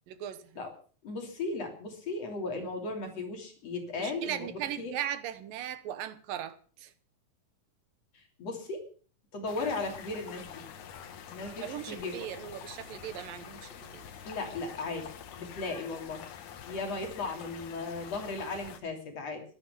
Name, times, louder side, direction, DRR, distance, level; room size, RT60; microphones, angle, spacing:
voice 1, 0.1-0.6 4.0-6.9 11.5-14.1, right 11 dB, 85° right, 2.9 m, -38 dB
voice 2, 1.0-4.5 4.8-4.9 8.1-8.9 9.3-10.6 11.3-12.1 14.3-15.1 15.3-16.3 16.7-19.4, left 3 dB, 50° left, 4.0 m, -36 dB
sound 1, 9.5-18.8, left 8 dB, 65° left, 2.6 m, -46 dB
14.0 x 12.0 x 6.9 m
omnidirectional pair, 3.9 m